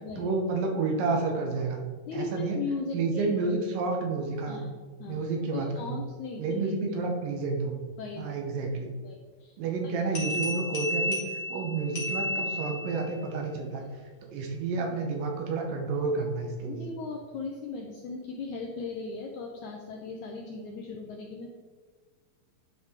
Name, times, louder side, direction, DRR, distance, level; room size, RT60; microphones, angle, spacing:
voice 1, 0.2-1.8 2.1-2.6 2.9-4.6 5.1-6.0 6.4-7.8 8.2-8.9 9.6-13.8 14.3-16.9, right 3 dB, 75° right, 2 dB, 2.6 m, -30 dB
voice 2, 2.1-3.3 4.5-4.7 5.0-5.2 5.5-6.9 8.0-8.3 9.0-9.5 9.8-9.9 16.7-21.5, left 4 dB, 85° left, 0 dB, 1.7 m, -37 dB
sound 1, 10.2-13.1, left 1 dB, 40° left, 2.3 m, -32 dB
10.0 x 4.9 x 3.6 m, 1.5 s
omnidirectional pair, 4.2 m